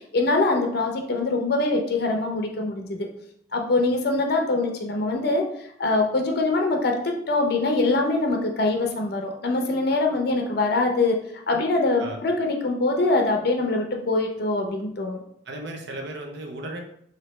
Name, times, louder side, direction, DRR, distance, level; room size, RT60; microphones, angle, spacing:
voice 1, 0.1-3.1 3.5-5.4 5.8-11.2 11.5-15.2, left 2 dB, 60° left, 2 dB, 0.6 m, -23 dB
voice 2, 15.5-16.8, right 2 dB, 65° right, 2 dB, 0.6 m, -35 dB
3.1 x 2.7 x 3.1 m, 0.68 s
head